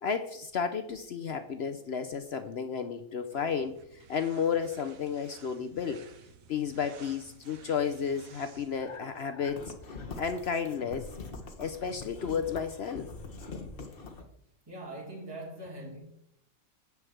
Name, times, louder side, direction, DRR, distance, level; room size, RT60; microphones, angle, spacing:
voice 1, 0.0-6.0 6.5-9.7 10.2-11.1 11.6-13.1, left 6 dB, 55° left, 0.8 m, -32 dB
sound 1, 3.3-8.9, right 7 dB, 75° right, 1.3 m, -54 dB
sound 2, 8.7-14.2, left 3 dB, 40° left, 1.4 m, -43 dB
voice 2, 14.7-16.0, right 1 dB, 15° right, 2.5 m, -42 dB
9.8 x 4.8 x 7.7 m
omnidirectional pair, 1.5 m